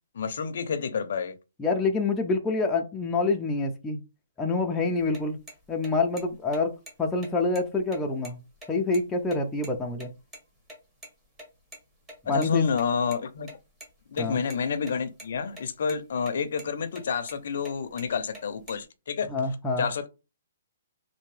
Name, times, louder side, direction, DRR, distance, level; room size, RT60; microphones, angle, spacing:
voice 1, 0.1-1.3 12.3-13.5 14.1-19.3 19.8-20.1, left 6 dB, 55° left, 0.5 m, -29 dB
voice 2, 1.6-4.0 4.4-5.4 5.7-6.7 7.0-8.4 8.7-10.1 12.3-12.6 14.2-14.4 19.3-19.9, left 3 dB, 5° left, 0.4 m, -26 dB
sound 1, 5.0-10.1 10.3-10.4 10.7-10.8 11.0-11.1 11.4-11.5 11.7-11.8 12.1-13.2 13.4-13.9 14.2-14.9 15.2-15.6 15.9-16.3 16.6-16.7 17.0-17.4 17.6-18.8, equal, 10° right, 0.9 m, -45 dB
3.4 x 2.6 x 3.2 m
hypercardioid pair, 170°, 0 cm